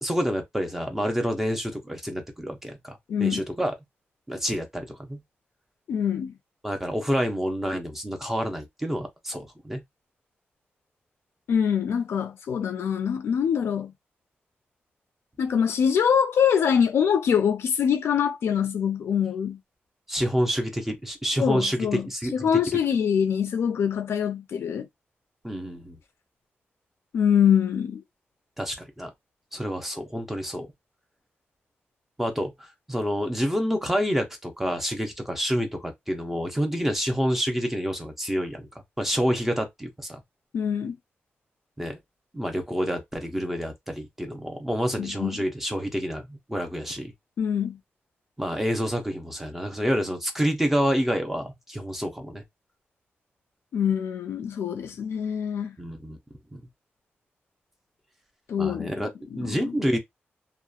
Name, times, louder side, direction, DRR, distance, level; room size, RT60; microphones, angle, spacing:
voice 1, 0.0-3.7 4.3-5.2 6.6-9.8 20.1-22.3 25.4-26.0 28.6-29.1 29.5-30.7 32.2-38.7 39.0-40.2 41.8-42.0 42.3-47.1 48.4-52.4 55.8-56.2 56.5-56.6 58.6-59.1 59.4-60.0, equal, 5° right, 0.6 m, -28 dB
voice 2, 3.1-3.4 5.9-6.3 11.5-13.9 15.4-19.6 21.4-22.1 22.3-24.9 27.1-28.0 40.5-41.0 45.0-45.4 47.4-47.8 53.7-55.8 58.5-59.8, left 8 dB, 90° left, 0.4 m, -24 dB
2.8 x 2.2 x 2.3 m
wide cardioid pair, 150°, 4 cm